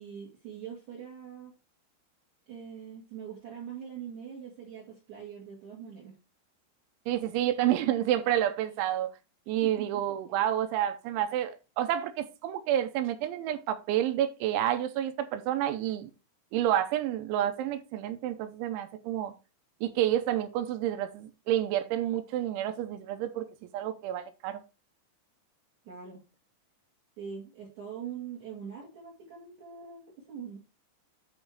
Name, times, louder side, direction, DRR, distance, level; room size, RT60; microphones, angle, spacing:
voice 1, 0.0-1.5 2.5-6.1 9.6-10.0 25.8-26.2 27.2-30.6, right 7 dB, 45° right, 2.9 m, -43 dB
voice 2, 7.1-9.1 9.5-16.1 16.5-19.3 19.8-23.5 23.7-24.6, right 11 dB, 85° right, 3.1 m, -29 dB
10.5 x 3.5 x 4.8 m
omnidirectional pair, 5.5 m